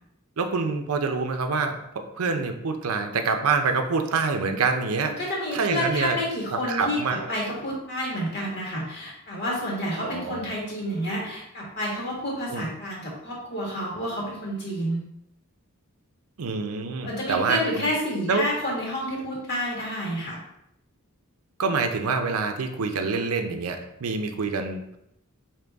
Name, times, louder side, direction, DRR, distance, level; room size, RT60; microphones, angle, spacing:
voice 1, 0.4-5.2 5.5-6.2 6.7-7.3 10.0-10.5 12.5-12.7 16.4-17.9 18.3-18.4 21.6-25.0, right 4 dB, 80° right, 6 dB, 0.6 m, -26 dB
voice 2, 5.1-15.0 17.0-20.4, equal, 50° left, -4 dB, 1.7 m, -29 dB
5.3 x 2.9 x 3.4 m, 0.80 s
head